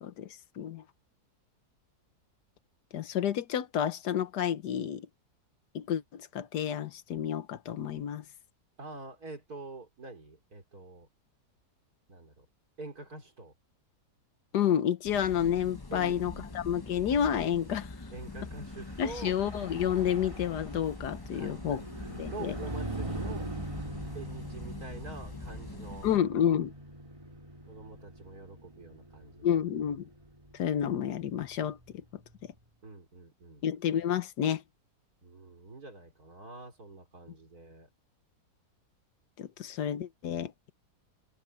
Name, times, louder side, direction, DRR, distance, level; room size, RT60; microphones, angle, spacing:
voice 1, 2.9-5.1 5.7-8.2 14.5-17.9 19.0-21.8 22.2-22.6 26.0-26.7 29.4-30.1 30.5-31.8 33.6-34.6 39.4-40.7, left 9 dB, 85° left, 1.6 m, -30 dB
voice 2, 8.8-11.1 12.1-12.5 12.8-13.5 15.9-16.5 18.1-19.4 21.3-23.5 24.1-26.1 27.7-29.6 32.8-33.6 35.2-37.9, right 3 dB, 65° right, 4.8 m, -46 dB
sound 1, 15.0-26.2, left 2 dB, 15° left, 0.9 m, -44 dB
Car passing by / Truck, 18.6-32.3, right 1 dB, 20° right, 3.6 m, -43 dB
omnidirectional pair, 1.7 m